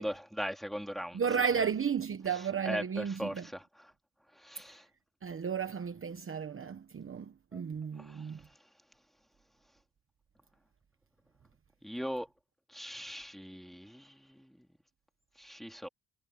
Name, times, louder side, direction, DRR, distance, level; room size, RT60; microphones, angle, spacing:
voice 1, 0.0-1.2 2.3-3.9 4.3-4.9 7.5-7.6 8.0-8.6 11.8-12.3 12.7-14.7 15.4-15.9, equal, ahead, 2.4 m, -40 dB
voice 2, 1.1-3.4 5.2-8.4, right 7 dB, 35° right, 1.0 m, -33 dB
wide cardioid pair, 165°, 39 cm